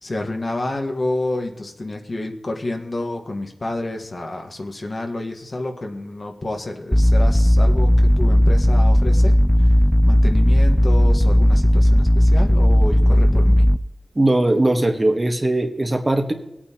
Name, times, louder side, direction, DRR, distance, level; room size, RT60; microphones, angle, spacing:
voice 1, 0.0-9.8 10.1-13.7, left 2 dB, 50° left, 3 dB, 1.4 m, -29 dB
sound 1, 6.9-13.8, equal, 10° left, 0.3 m, -15 dB
voice 2, 14.1-16.3, right 1 dB, 30° right, 4 dB, 1.3 m, -19 dB
18.0 x 8.7 x 2.9 m, 0.90 s
wide cardioid pair, 70°, 0 cm